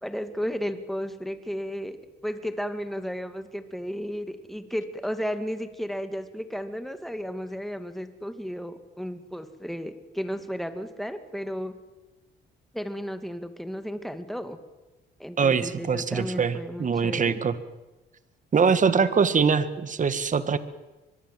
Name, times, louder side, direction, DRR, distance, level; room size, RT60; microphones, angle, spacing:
voice 1, 0.0-2.0 2.2-11.7 12.7-14.6 15.2-17.4, equal, ahead, 9 dB, 2.3 m, -33 dB
voice 2, 15.4-17.6 18.5-20.6, right 6 dB, 40° right, 12 dB, 1.7 m, -23 dB
24.5 x 21.5 x 7.7 m, 1.1 s
cardioid pair, 90°, 20 cm